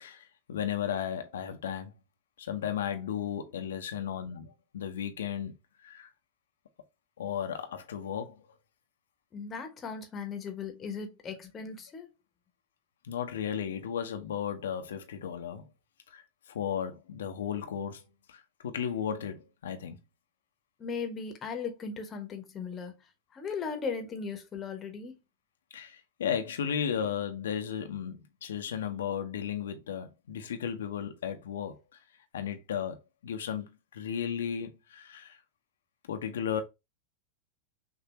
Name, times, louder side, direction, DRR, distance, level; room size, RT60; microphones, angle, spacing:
voice 1, 0.0-1.9 2.4-5.6 5.8-6.1 7.2-8.4 13.0-15.7 16.1-20.0 25.7-31.8 32.3-33.0 33.2-35.4 36.1-36.6, left 8 dB, 60° left, 0.7 m, -35 dB
voice 2, 9.3-12.1 20.8-22.9 23.3-25.2, left 5 dB, 25° left, 1.1 m, -37 dB
6.0 x 2.6 x 2.9 m
figure-of-eight pair, 90°, 0 cm